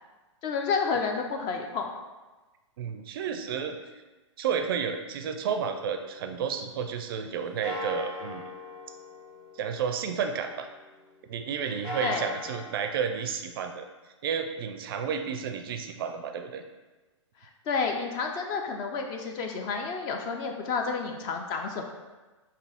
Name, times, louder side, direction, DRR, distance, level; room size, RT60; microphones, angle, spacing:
voice 1, 0.4-1.9 12.0-12.2 17.4-21.8, left 5 dB, 25° left, 3 dB, 0.4 m, -30 dB
voice 2, 2.8-3.8 4.4-8.4 9.5-10.7 11.3-13.9 14.2-16.6, right 7 dB, 50° right, 7 dB, 0.4 m, -31 dB
sound 1, 5.5-7.2 7.6-11.2 11.6-12.9, left 1 dB, 50° left, 1.4 m, -41 dB
4.3 x 2.7 x 3.4 m, 1.2 s
hypercardioid pair, 125°, 16 cm